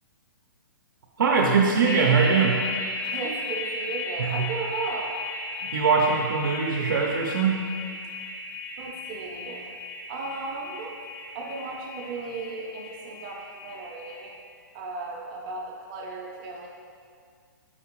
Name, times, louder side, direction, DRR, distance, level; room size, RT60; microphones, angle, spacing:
voice 1, 1.2-2.6 4.2-4.3 5.7-7.6, right 5 dB, 85° right, -2 dB, 0.5 m, -22 dB
sound 1, 1.8-14.3, left 2 dB, 80° left, 0.6 m, -35 dB
voice 2, 3.0-5.1 8.8-9.7 10.1-10.9 11.3-14.3 14.7-16.7, right 3 dB, 25° right, -1 dB, 0.5 m, -35 dB
4.2 x 3.5 x 3.0 m, 2.1 s
hypercardioid pair, 155°, 11 cm